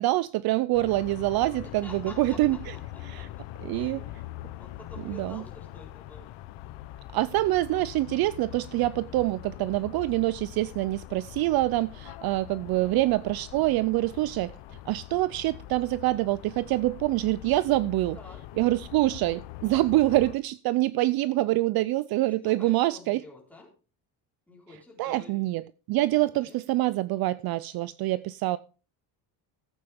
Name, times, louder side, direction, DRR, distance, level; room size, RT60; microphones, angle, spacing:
voice 1, 0.0-2.8 3.0-3.3 3.6-4.0 5.1-5.4 7.1-14.5 14.9-18.2 18.6-23.2 25.0-28.6, right 17 dB, 55° right, 0.5 m, -26 dB
sound 1, 0.7-20.4, left 14 dB, 70° left, 0.8 m, -43 dB
voice 2, 1.6-2.6 2.9-3.3 3.7-4.0 4.6-6.3 12.7-13.0 18.1-18.4 22.2-23.7 24.5-25.4 26.3-26.6, left 2 dB, 5° left, 4.2 m, -49 dB
16.0 x 8.6 x 3.5 m
cardioid pair, 155°, 44 cm